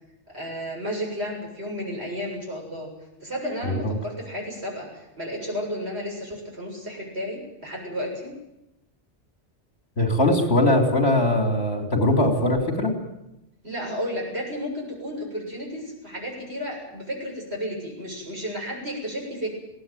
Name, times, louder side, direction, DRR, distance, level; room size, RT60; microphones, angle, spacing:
voice 1, 0.3-2.9 3.2-8.3 13.6-19.6, equal, 60° right, -1 dB, 7.9 m, -32 dB
voice 2, 10.0-12.9, left 1 dB, 60° left, 4 dB, 3.8 m, -21 dB
21.0 x 17.5 x 9.2 m, 0.90 s
omnidirectional pair, 1.2 m